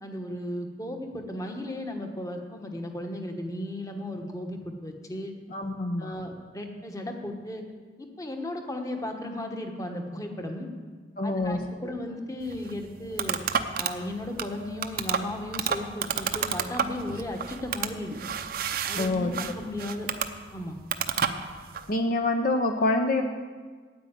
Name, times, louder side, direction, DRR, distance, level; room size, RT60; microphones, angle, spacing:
voice 1, 0.0-5.3 6.0-7.6 8.0-10.7 11.2-13.4 13.8-18.1 18.9-20.1 20.5-20.7, left 1 dB, 20° left, 4 dB, 1.2 m, -35 dB
voice 2, 5.5-6.2 11.2-12.0 19.0-19.3 21.9-23.2, left 2 dB, 50° left, 4 dB, 0.8 m, -26 dB
sound 1, 12.4-21.9, right 7 dB, 55° right, 0.7 m, -31 dB
9.5 x 8.4 x 8.8 m, 1.5 s
head